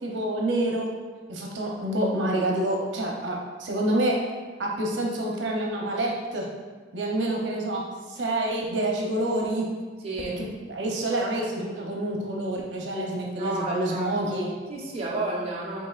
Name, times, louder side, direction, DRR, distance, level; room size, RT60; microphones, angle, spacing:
voice 1, 0.0-0.9 1.3-4.2 4.6-6.5 6.9-7.8 8.1-9.6 10.7-14.5, right 1 dB, 90° right, -1 dB, 0.7 m, -27 dB
voice 2, 10.0-10.4 13.4-14.4 14.7-15.9, right 2 dB, 35° right, -5 dB, 0.9 m, -32 dB
7.9 x 2.8 x 2.4 m, 1.4 s
head